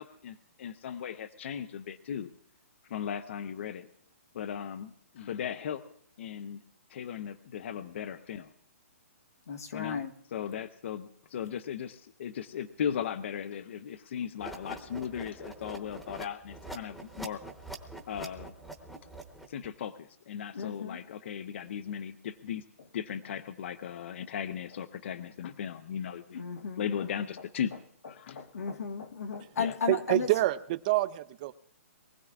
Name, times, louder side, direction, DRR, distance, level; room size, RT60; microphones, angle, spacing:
voice 1, 0.0-2.3 2.9-3.9 4.3-5.8 6.2-6.6 6.9-8.5 9.7-10.0 10.3-17.4 18.1-18.5 19.5-22.6 22.9-26.5 26.8-27.7 28.1-28.4 29.6-29.8, left 8 dB, 50° left, 12 dB, 0.7 m, -37 dB
voice 2, 9.5-10.1 20.5-21.0 26.3-27.1 28.3-30.3, left 5 dB, 80° left, 4 dB, 1.5 m, -35 dB
sound 1, 14.4-19.7, right 2 dB, ahead, 1.0 m, -44 dB
voice 3, 29.9-31.5, right 17 dB, 30° right, 13 dB, 0.5 m, -27 dB
23.0 x 15.5 x 2.4 m, 0.71 s
hypercardioid pair, 155°, 8 cm